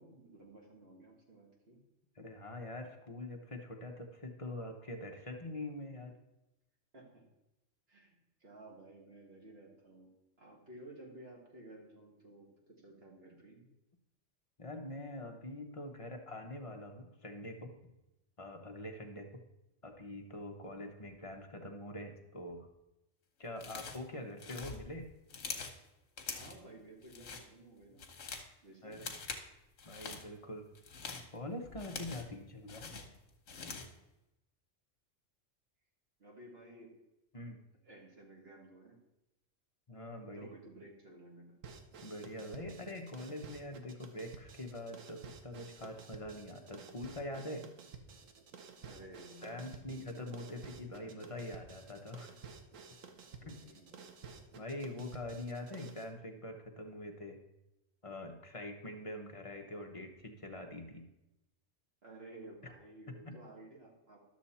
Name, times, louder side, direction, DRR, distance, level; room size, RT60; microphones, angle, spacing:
voice 1, 0.0-1.8 6.9-7.2 7.9-13.7 26.3-28.1 28.6-29.0 36.2-36.9 37.8-39.0 40.4-41.6 48.8-51.1 53.3-54.0 62.0-64.3, right 1 dB, 50° right, -1 dB, 2.0 m, -55 dB
voice 2, 2.2-6.1 14.6-17.7 18.4-19.3 19.8-22.7 23.4-25.1 28.8-29.1 29.8-30.7 31.3-32.9 37.3-37.6 39.9-40.5 42.0-47.7 49.4-52.3 53.5-53.6 54.5-57.4 58.0-61.1 63.1-63.4, left 1 dB, 30° left, 3 dB, 0.9 m, -44 dB
sound 1, 23.6-24.1 24.4-25.8 26.2-26.6 27.0-27.5 27.8-28.5 28.9-29.5 29.8-30.2 30.7-32.4 32.7-34.0, left 5 dB, 75° left, 1.4 m, -44 dB
sound 2, 41.6-56.1, right 5 dB, 80° right, 1.2 m, -53 dB
11.5 x 6.7 x 4.2 m, 0.93 s
omnidirectional pair, 1.3 m